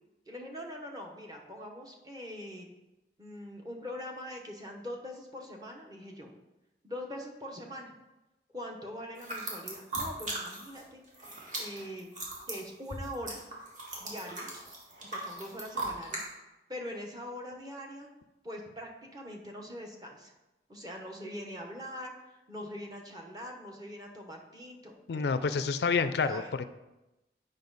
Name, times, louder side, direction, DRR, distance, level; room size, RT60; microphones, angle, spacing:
voice 1, 0.3-2.7 3.2-6.3 6.8-7.9 8.5-11.0 11.6-12.1 12.5-13.4 14.0-14.5 15.0-16.2 16.7-18.1 18.4-20.3 20.7-25.7 26.3-26.5, left 1 dB, 20° right, 1 dB, 1.0 m, -43 dB
sound 1, 9.2-10.8 11.1-16.2, right 2 dB, 45° right, 2.0 m, -38 dB
voice 2, 25.1-26.6, left 5 dB, 70° left, 12 dB, 0.4 m, -28 dB
8.6 x 5.3 x 4.0 m, 1.0 s
head